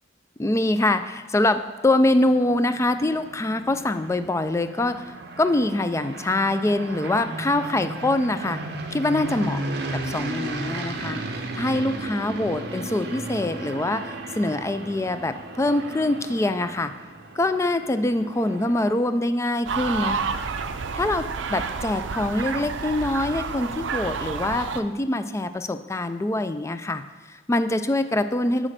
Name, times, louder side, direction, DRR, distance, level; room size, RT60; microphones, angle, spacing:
voice 1, 0.4-5.0 5.4-8.6 8.9-9.6 10.0-11.2 11.6-16.9 17.4-20.2 20.9-27.0 27.3-28.7, left 2 dB, 15° left, 10 dB, 0.3 m, -24 dB
sound 1, 2.0-19.2, right 2 dB, 60° right, 0.9 m, -35 dB
sound 2, 19.7-24.8, right 5 dB, 80° right, 0.5 m, -29 dB
7.4 x 5.0 x 6.5 m, 1.2 s
head